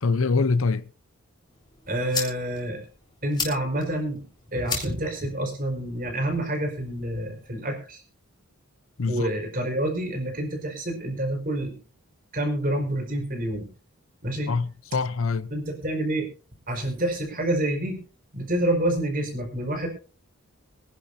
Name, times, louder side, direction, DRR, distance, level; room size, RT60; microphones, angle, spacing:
voice 1, 0.0-0.9 9.0-9.3 14.5-15.5, left 4 dB, 65° left, 0.7 m, -24 dB
sound 1, 1.5-7.5, left 5 dB, 20° left, 3.5 m, -37 dB
voice 2, 1.9-2.8 3.2-4.2 4.5-8.0 9.1-11.8 12.3-13.6 14.2-14.6 15.5-16.3 16.7-18.0 18.3-19.9, right 1 dB, 40° right, 4.7 m, -28 dB
24.0 x 10.5 x 2.7 m
head